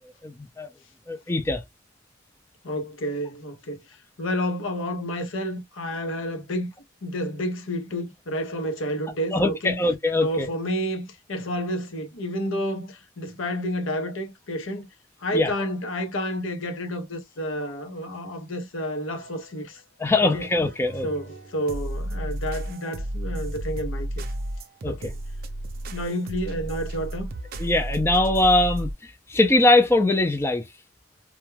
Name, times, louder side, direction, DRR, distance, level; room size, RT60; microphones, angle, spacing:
voice 1, 0.2-0.7 1.1-1.6 9.3-10.5 15.3-15.5 20.0-21.1 24.8-24.9 27.6-30.6, left 2 dB, 10° left, 0.3 m, -21 dB
voice 2, 2.6-3.8 4.2-6.7 7.0-9.8 10.2-14.9 15.2-19.8 20.3-20.5 21.0-24.3 24.9-25.2 25.8-27.3, equal, 85° left, 0.8 m, -30 dB
sound 1, 19.2-19.7 20.1-28.9, right 1 dB, 45° right, 0.5 m, -33 dB
2.2 x 2.2 x 3.1 m
head